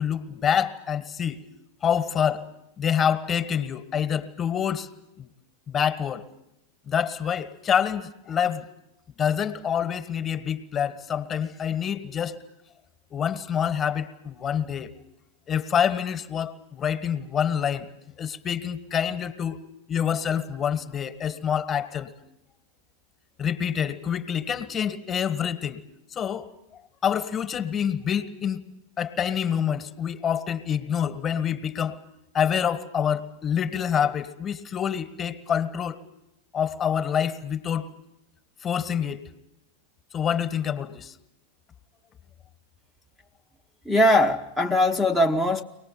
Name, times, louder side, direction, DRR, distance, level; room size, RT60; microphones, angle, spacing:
voice 1, 0.0-1.4 1.8-2.5 2.8-4.9 5.2-5.3 5.7-6.2 6.8-8.7 9.2-12.4 13.1-14.9 15.5-17.9 18.2-19.6 19.9-22.1 23.4-25.8 26.1-26.5 27.0-28.7 29.0-32.0 32.3-36.0 36.5-37.9 38.6-39.3 40.1-41.1, left 8 dB, 25° left, 12 dB, 1.6 m, -26 dB
voice 2, 43.8-45.6, left 1 dB, ahead, -2 dB, 1.0 m, -21 dB
24.0 x 19.5 x 8.9 m, 0.87 s
figure-of-eight pair, 90°, 0 cm